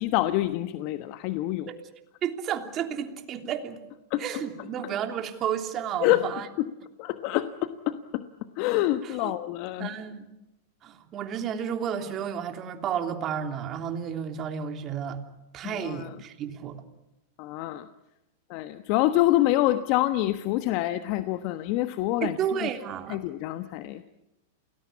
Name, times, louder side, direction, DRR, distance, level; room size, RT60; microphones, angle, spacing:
voice 1, 0.0-1.7 4.1-4.2 4.8-4.9 6.0-6.3 6.6-6.7 7.0-8.2 8.6-9.9 15.6-16.2 17.4-17.9 18.5-22.7 23.1-24.0, left 15 dB, 50° left, 10 dB, 1.2 m, -26 dB
voice 2, 2.2-3.8 4.2-6.5 9.2-9.3 9.8-10.3 10.8-15.2 15.5-16.8 22.2-23.2, right 8 dB, 35° right, 5 dB, 3.2 m, -32 dB
29.0 x 20.0 x 8.6 m, 0.93 s
hypercardioid pair, 105°, 0 cm